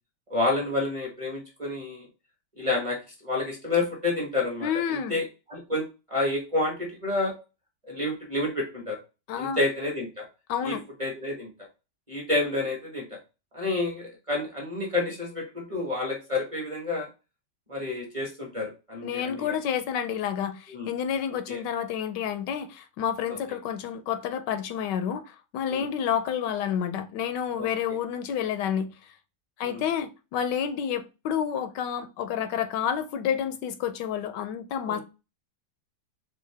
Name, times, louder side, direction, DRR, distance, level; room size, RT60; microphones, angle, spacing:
voice 1, 0.3-2.1 2.6-3.0 3.2-7.3 7.9-9.0 9.4-10.3 10.6-11.5 12.1-13.0 13.5-17.1 17.7-19.5 20.7-20.9 21.5-21.6 23.3-23.4 25.7-25.9 27.6-27.7 29.6-29.8 34.9-35.0, left 2 dB, 25° right, 0.9 m, -29 dB
voice 2, 4.6-5.2 9.3-9.6 10.5-10.8 19.0-29.1 29.6-35.0, left 8 dB, 80° left, 1.2 m, -29 dB
4.6 x 2.6 x 3.3 m
omnidirectional pair, 1.9 m